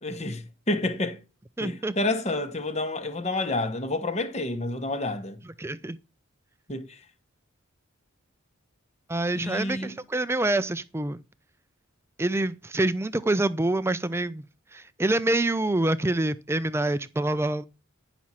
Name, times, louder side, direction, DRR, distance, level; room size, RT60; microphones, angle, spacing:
voice 1, 0.0-1.2 1.6-5.4 6.7-7.0 9.3-10.0, left 2 dB, 30° left, 1.1 m, -29 dB
voice 2, 1.6-2.0 5.4-6.0 9.1-11.2 12.2-14.4 14.7-17.6, right 2 dB, 10° right, 0.4 m, -26 dB
10.0 x 6.0 x 4.2 m
head